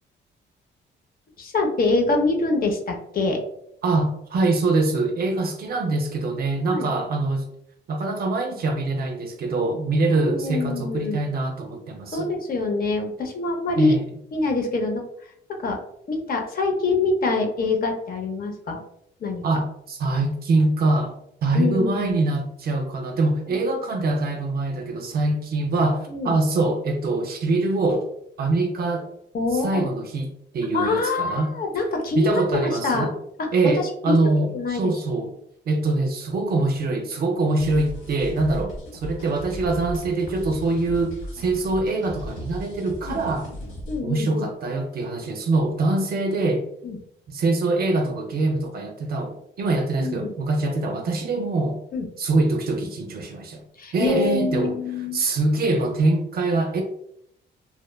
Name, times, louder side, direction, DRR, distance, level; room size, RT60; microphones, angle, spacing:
voice 1, 1.4-3.4 6.7-6.9 10.2-11.3 12.1-13.9 14.3-15.3 15.6-15.8 16.1-18.8 19.2-19.4 21.5-22.1 23.5-23.6 26.1-26.3 29.3-29.9 30.7-33.1 33.4-34.2 34.5-34.8 42.8-43.2 43.9-44.5 46.8-47.0 49.9-50.3 51.9-52.1 53.8-55.2, left 3 dB, 45° left, 3 dB, 0.5 m, -25 dB
voice 2, 3.8-7.5 7.9-12.3 13.8-14.0 19.4-21.1 21.4-28.0 28.4-29.1 29.5-31.5 32.2-33.1 33.5-35.3 35.7-43.5 44.0-46.6 47.3-51.8 52.2-53.6 53.9-54.7 55.1-56.8, right 2 dB, 50° right, 4 dB, 0.4 m, -24 dB
sound 1, 37.6-44.0, equal, 80° left, 1.0 m, -37 dB
2.8 x 2.1 x 2.2 m, 0.73 s
cardioid pair, 90°, 20 cm